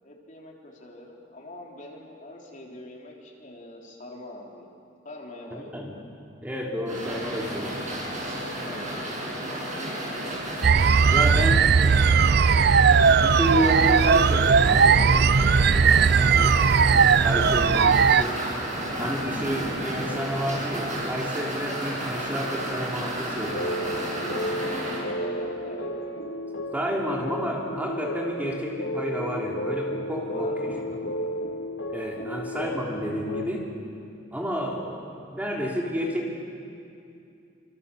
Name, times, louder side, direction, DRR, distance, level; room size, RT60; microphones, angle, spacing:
voice 1, 0.0-4.7 5.0-5.8 8.6-9.0 15.9-16.4 24.8-25.9 30.3-31.1 32.2-32.4, left 1 dB, 40° left, -1 dB, 3.8 m, -43 dB
voice 2, 5.5-5.9 6.4-7.9 10.6-11.7 13.2-15.0 16.4-16.5 17.2-18.4 19.0-24.2 26.7-30.7 31.9-33.7 34.3-36.3, equal, 10° right, -2 dB, 3.3 m, -30 dB
sound 1, 6.9-25.0, right 1 dB, 40° right, 7.8 m, -32 dB
sound 2, 10.6-18.2, right 6 dB, 60° right, 0.5 m, -18 dB
sound 3, 23.4-33.4, equal, 80° left, 2.1 m, -33 dB
28.0 x 26.0 x 7.1 m, 2.5 s
head